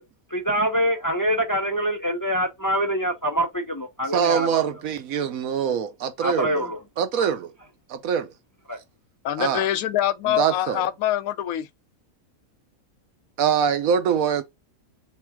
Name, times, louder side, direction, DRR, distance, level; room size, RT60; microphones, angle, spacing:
voice 1, 0.3-4.6 6.2-6.8 7.2-7.3 8.7-8.8, equal, 30° left, 0.4 m, -25 dB
voice 2, 4.1-6.6 7.0-7.5 7.9-8.3 9.4-9.7 10.3-10.8 13.4-14.4, right 8 dB, 80° right, 1.2 m, -24 dB
voice 3, 9.2-11.7, left 12 dB, 85° left, 1.1 m, -24 dB
3.4 x 3.2 x 4.4 m
omnidirectional pair, 1.5 m